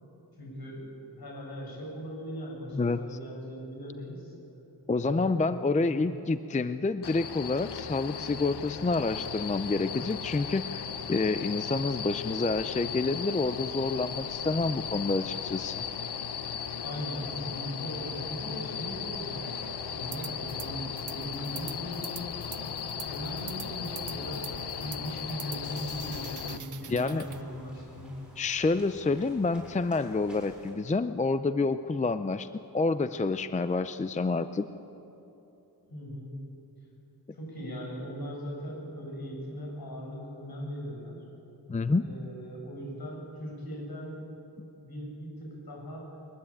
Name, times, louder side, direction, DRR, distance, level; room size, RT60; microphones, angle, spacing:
voice 1, 0.4-4.3 4.9-6.0 16.8-28.1 35.9-36.4 37.3-41.2 41.9-44.2 44.7-46.1, equal, 70° left, -2 dB, 7.9 m, -39 dB
voice 2, 4.9-15.9 26.9-27.3 28.4-32.5 32.7-34.7 41.7-42.0 44.6-44.7, left 3 dB, 20° left, 12 dB, 0.5 m, -28 dB
sound 1, 7.0-26.6, left 7 dB, 85° left, 1.0 m, -37 dB
sound 2, 19.3-30.7, right 1 dB, ahead, 6.8 m, -52 dB
sound 3, 20.1-20.7 21.0-27.4, right 9 dB, 50° right, 0.6 m, -45 dB
22.0 x 21.0 x 8.8 m, 3.0 s
wide cardioid pair, 140°, 39 cm